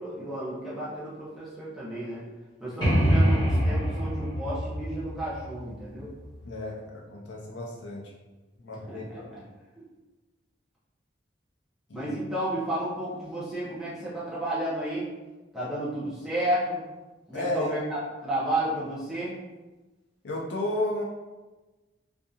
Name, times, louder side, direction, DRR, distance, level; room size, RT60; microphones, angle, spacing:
voice 1, 0.0-2.2 2.6-6.1 8.9-9.4 11.9-15.0 15.5-16.8 17.3-19.3, right 1 dB, ahead, -10 dB, 0.7 m, -32 dB
sound 1, 2.8-6.5, equal, 25° left, 1.1 m, -25 dB
voice 2, 6.4-8.1 8.6-9.3 11.9-12.1 17.3-17.8 20.2-21.0, left 1 dB, 70° left, -2 dB, 0.5 m, -32 dB
2.7 x 2.5 x 2.4 m, 1.2 s
head